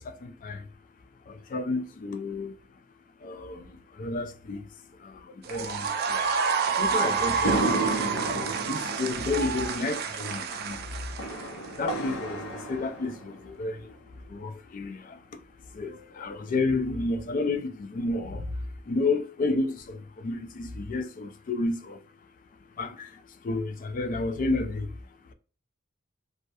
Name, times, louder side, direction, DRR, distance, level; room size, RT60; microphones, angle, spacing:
voice 1, 0.1-0.7 1.3-2.5 3.2-3.7 4.0-4.6 5.0-5.1 5.5-6.3 6.6-7.6 8.2-10.8 11.8-13.9 14.3-15.2 15.7-18.4 18.9-22.0 22.8-23.1 23.4-24.9, left 3 dB, 40° left, 0.3 m, -31 dB
sound 1, 5.4-11.8, right 5 dB, 50° right, 0.3 m, -29 dB
sound 2, 7.4-13.9, right 1 dB, 85° left, 0.6 m, -33 dB
2.2 x 2.0 x 2.8 m
head